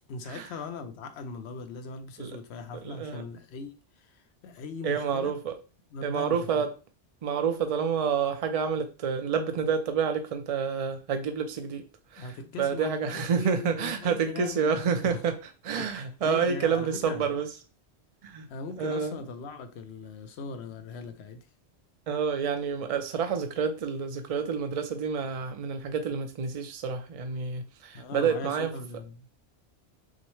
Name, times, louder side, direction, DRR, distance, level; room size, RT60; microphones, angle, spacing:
voice 1, 0.1-5.3 5.9-6.7 12.2-15.2 15.7-17.3 18.5-21.5 27.9-29.3, left 4 dB, 70° left, 0.9 m, -40 dB
voice 2, 2.8-3.2 4.8-5.5 6.0-6.7 7.2-11.9 12.1-12.3 12.6-15.4 15.6-17.5 18.2-18.5 18.8-19.2 22.1-28.7, right 6 dB, 40° right, 0.5 m, -28 dB
6.2 x 2.1 x 3.1 m
omnidirectional pair, 1.2 m